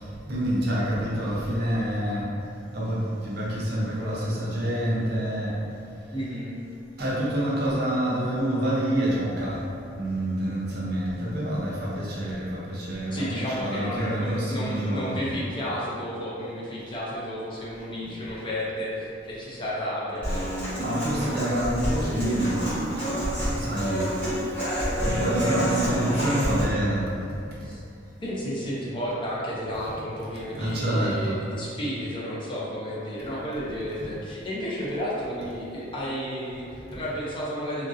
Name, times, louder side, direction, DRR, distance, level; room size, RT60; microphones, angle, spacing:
voice 1, 0.0-2.3 2.7-5.6 7.0-9.7 9.9-15.4 18.0-18.2 20.7-24.1 25.0-27.4 30.6-31.4, right 1 dB, 55° right, -6 dB, 0.6 m, -27 dB
voice 2, 6.1-6.5 13.1-20.3 27.6-27.8 28.2-37.9, equal, 25° left, -7 dB, 0.5 m, -32 dB
Human voice / Acoustic guitar, 20.2-26.6, equal, 10° left, 1.3 m, -28 dB
2.9 x 2.6 x 2.5 m, 2.6 s
head